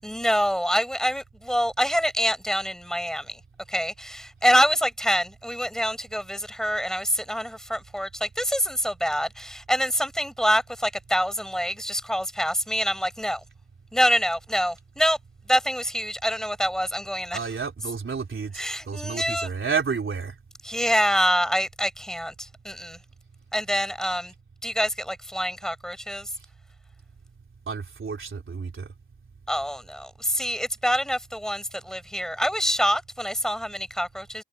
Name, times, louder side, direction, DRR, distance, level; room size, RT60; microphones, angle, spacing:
voice 1, 0.0-3.4 3.7-13.4 13.9-15.2 15.5-17.4 18.5-19.5 20.6-23.0 23.5-24.3 24.6-26.3 29.5-34.4, equal, ahead, 7.2 m, -26 dB
voice 2, 17.3-18.5 18.9-20.3 27.7-28.9, right 5 dB, 80° right, 3.7 m, -30 dB
cardioid pair, 60°, 21 cm